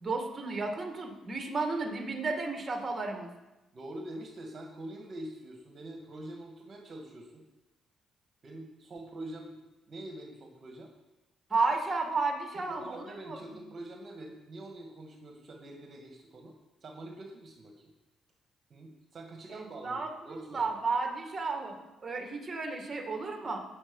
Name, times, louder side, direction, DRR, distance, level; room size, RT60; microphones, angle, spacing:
voice 1, 0.0-3.3 11.5-13.6 19.5-23.6, right 3 dB, 30° right, 3 dB, 2.1 m, -33 dB
voice 2, 3.7-7.4 8.4-9.6 9.9-10.9 12.5-16.5 16.8-17.9 18.7-20.7, right 1 dB, 45° right, 2 dB, 1.9 m, -45 dB
18.5 x 6.9 x 5.5 m, 1.0 s
cardioid pair, 90°, 0 cm